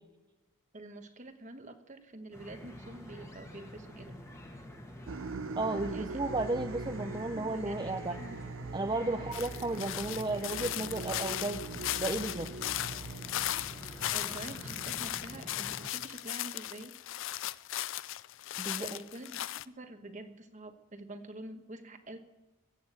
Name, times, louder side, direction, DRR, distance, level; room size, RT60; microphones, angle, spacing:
voice 1, 0.7-4.2 5.9-6.2 7.3-8.4 9.1-9.3 14.1-16.9 18.7-22.2, right 1 dB, 35° right, 7 dB, 1.2 m, -47 dB
sound 1, 2.3-15.9, left 1 dB, 15° left, 1.6 m, -48 dB
sound 2, 5.1-15.6, right 4 dB, 60° right, 0.5 m, -43 dB
voice 2, 5.6-8.1 8.7-11.6 12.0-12.5 18.6-18.9, right 2 dB, 20° right, 4 dB, 0.6 m, -33 dB
sound 3, 9.3-19.6, left 13 dB, 60° left, 0.4 m, -37 dB
15.0 x 8.4 x 8.7 m, 1.1 s
head